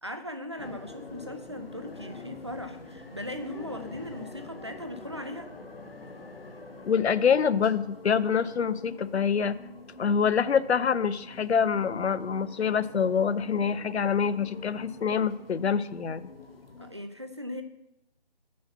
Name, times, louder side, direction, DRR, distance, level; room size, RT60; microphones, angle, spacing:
voice 1, 0.0-5.5 16.8-17.6, left 1 dB, 30° right, 7 dB, 0.4 m, -38 dB
sound 1, 0.6-16.9, left 2 dB, 60° left, 1.2 m, -46 dB
voice 2, 6.9-9.5 10.0-16.2, left 6 dB, 85° left, 16 dB, 0.5 m, -25 dB
6.3 x 5.6 x 7.1 m, 0.89 s
figure-of-eight pair, 155°, 32 cm